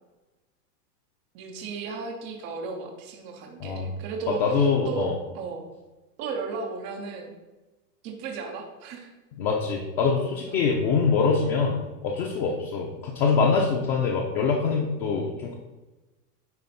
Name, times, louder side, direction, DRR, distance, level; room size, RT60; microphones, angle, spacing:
voice 1, 1.3-5.1 5.3-5.6 6.2-7.4 8.0-9.1 10.5-10.7 12.4-12.7, right 4 dB, 15° right, 1 dB, 0.3 m, -35 dB
voice 2, 4.4-5.1 9.4-15.6, left 5 dB, 40° left, -1 dB, 0.9 m, -24 dB
9.3 x 3.2 x 5.5 m, 1.1 s
supercardioid pair, 160°, 48 cm